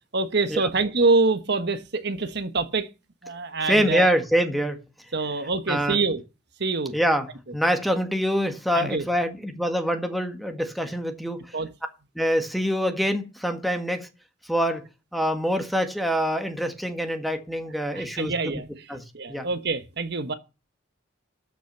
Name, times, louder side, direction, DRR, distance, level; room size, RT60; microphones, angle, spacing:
voice 1, 0.1-2.9 3.2-4.2 5.1-6.2 6.6-7.0 8.7-9.0 11.5-11.7 17.9-18.9 19.1-20.3, right 3 dB, 60° right, 1.2 m, -25 dB
voice 2, 3.7-4.8 5.7-6.0 6.9-7.3 7.5-11.5 12.1-14.1 14.4-18.6 18.9-19.5, equal, ahead, 1.7 m, -25 dB
13.0 x 6.2 x 6.7 m
head